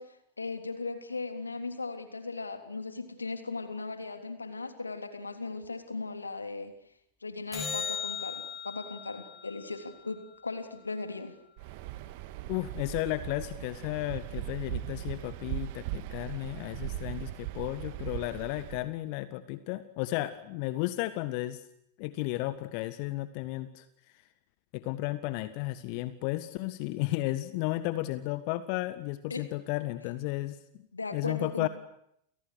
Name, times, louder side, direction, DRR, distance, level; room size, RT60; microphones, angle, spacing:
voice 1, 0.0-6.7 7.2-11.3 29.3-29.5 30.9-31.7, left 3 dB, 80° left, 7 dB, 3.4 m, -38 dB
sound 1, 7.5-12.0 18.5-18.6, left 7 dB, 20° left, 5.0 m, -40 dB
Waves surf, 11.6-18.9, right 15 dB, 50° right, 2.0 m, -39 dB
voice 2, 12.5-21.7 22.0-23.8 24.1-24.2 24.7-30.6 31.1-31.7, left 17 dB, 45° left, 12 dB, 1.6 m, -33 dB
30.0 x 29.5 x 6.6 m, 0.73 s
figure-of-eight pair, 90°, 0 cm